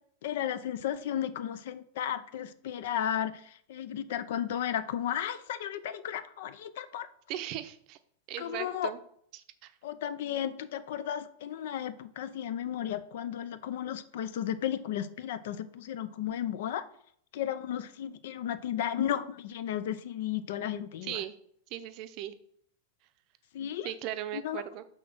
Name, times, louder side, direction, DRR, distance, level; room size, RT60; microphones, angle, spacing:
voice 1, 0.2-7.1 8.4-8.9 9.8-16.8 17.3-21.2 23.5-23.9 24.3-24.6, left 10 dB, 60° left, 14 dB, 0.5 m, -34 dB
voice 2, 7.3-8.0 8.3-9.0 9.3-9.7 21.0-21.3 21.7-22.3 23.8-24.8, right 12 dB, 40° right, 11 dB, 0.6 m, -38 dB
6.1 x 3.7 x 6.1 m, 0.65 s
supercardioid pair, 155°, 0 cm